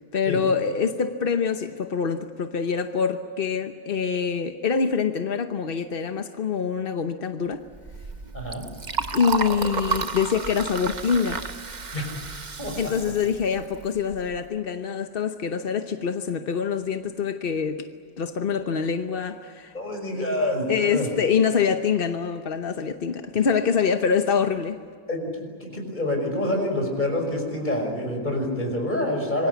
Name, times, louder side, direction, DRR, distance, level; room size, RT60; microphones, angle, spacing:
voice 1, 0.1-7.6 9.1-11.4 12.8-17.9 18.2-19.7 20.7-24.8, left 6 dB, 45° left, 0.7 m, -25 dB
Liquid, 7.7-14.4, right 4 dB, 35° right, 0.8 m, -32 dB
voice 2, 8.3-8.7 11.9-12.1 12.6-12.9 19.7-21.1 25.1-29.5, left 1 dB, 25° left, 6.0 m, -27 dB
26.5 x 22.5 x 8.3 m
omnidirectional pair, 2.0 m